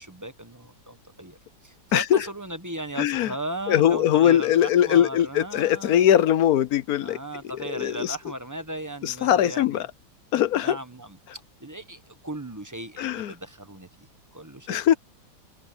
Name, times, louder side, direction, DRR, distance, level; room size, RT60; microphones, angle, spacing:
voice 1, 0.0-1.4 1.6-6.0 7.0-9.8 10.6-11.2 11.6-14.1 14.3-14.8, right 1 dB, 15° right, 1.0 m, -37 dB
voice 2, 1.9-2.3 3.0-3.3 3.7-7.2 7.5-8.2 9.0-9.9 10.3-10.8 13.0-13.3 14.7-14.9, left 10 dB, 65° left, 1.1 m, -21 dB
omnidirectional pair, 1.9 m